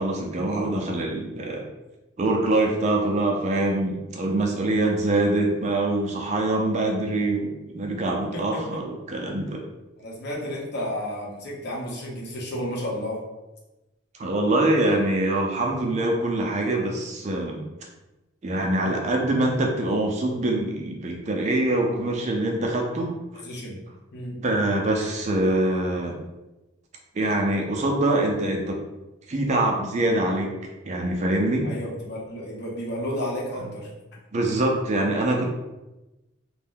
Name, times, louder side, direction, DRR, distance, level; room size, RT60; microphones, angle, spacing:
voice 1, 0.0-1.6 2.2-9.6 14.2-17.6 18.4-23.1 24.3-26.2 27.2-28.8 29.3-30.5 30.8-31.7 34.3-35.4, right 2 dB, 35° right, 1 dB, 0.4 m, -24 dB
voice 2, 8.3-8.6 10.0-13.2 23.3-23.8 24.1-24.3 31.6-33.9, equal, 55° left, -4 dB, 0.8 m, -32 dB
2.5 x 2.1 x 3.6 m, 1.0 s
head